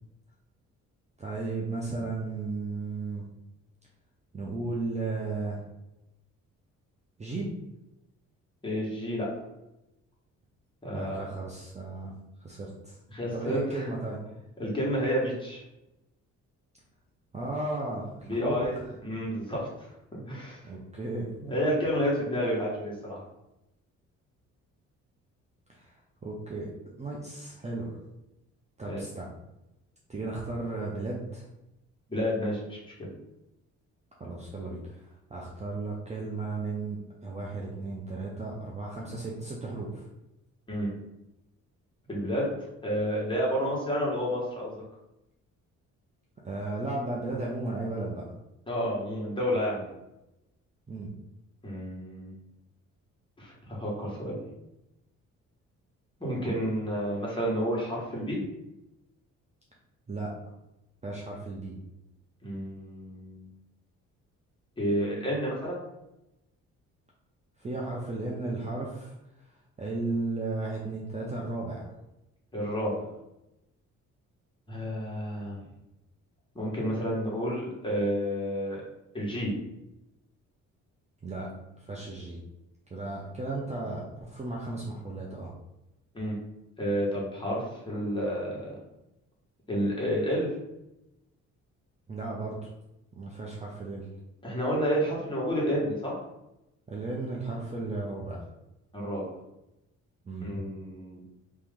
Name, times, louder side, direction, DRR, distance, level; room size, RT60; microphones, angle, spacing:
voice 1, 1.2-3.3 4.3-5.6 7.2-7.6 10.9-12.1 12.4-13.0 13.3-14.2 17.3-18.7 20.6-21.3 25.8-25.9 26.2-26.7 27.0-27.9 28.8-29.3 30.1-31.4 34.2-35.0 35.3-40.1 46.4-48.2 50.9-51.1 60.1-60.3 61.0-61.8 67.6-69.2 69.8-71.8 81.2-81.5 81.8-82.4 82.9-85.5 92.1-92.7 93.2-94.1 96.9-98.4 100.2-100.5, right 2 dB, 20° right, -3 dB, 0.7 m, -34 dB
voice 2, 8.6-9.3 10.8-11.2 13.1-13.8 14.6-15.6 18.2-20.7 21.4-23.2 28.9-29.0 32.1-33.1 40.7-40.9 42.1-42.6 42.8-44.8 48.7-49.9 51.6-52.3 53.4-54.4 56.2-58.4 62.4-63.5 64.8-65.8 72.5-73.1 74.7-75.6 76.5-78.8 79.1-79.5 86.1-86.4 86.8-88.7 89.7-90.6 94.4-96.2 98.9-99.3 100.4-101.2, equal, 15° left, -5 dB, 1.5 m, -30 dB
3.1 x 3.0 x 3.7 m, 0.91 s
cardioid pair, 90°, 30 cm